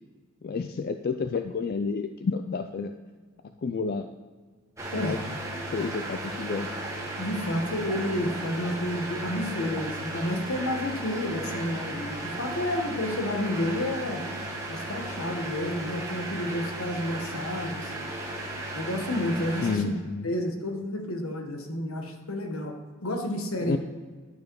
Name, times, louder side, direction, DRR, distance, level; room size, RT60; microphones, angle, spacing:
voice 1, 0.4-2.9 3.6-4.1 4.9-5.2 5.7-6.7 19.6-20.3 23.6-23.8, left 4 dB, 45° left, 8 dB, 0.3 m, -30 dB
sound 1, 4.8-19.7, right 1 dB, 15° right, 1.5 m, -35 dB
voice 2, 4.9-5.2 7.2-14.3 14.7-17.9 18.7-19.9 20.2-23.8, left 1 dB, 75° left, 4 dB, 1.2 m, -30 dB
11.5 x 5.1 x 4.6 m, 1.5 s
head